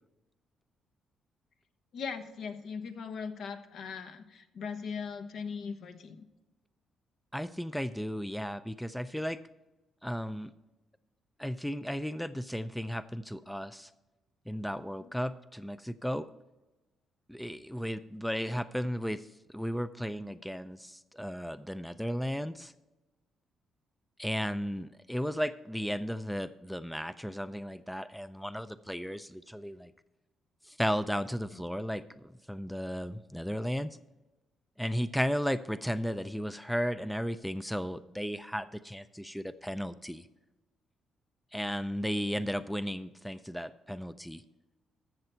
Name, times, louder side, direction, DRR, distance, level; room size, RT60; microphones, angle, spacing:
voice 1, 1.9-6.2, left 5 dB, 70° left, 7 dB, 1.2 m, -39 dB
voice 2, 7.3-9.4 10.0-10.5 11.4-13.9 14.5-16.3 17.3-22.7 24.2-29.9 30.6-34.0 34.8-40.3 41.5-44.4, equal, ahead, 13 dB, 0.4 m, -35 dB
14.0 x 6.7 x 4.4 m, 1.1 s
cardioid pair, 90°, 0 cm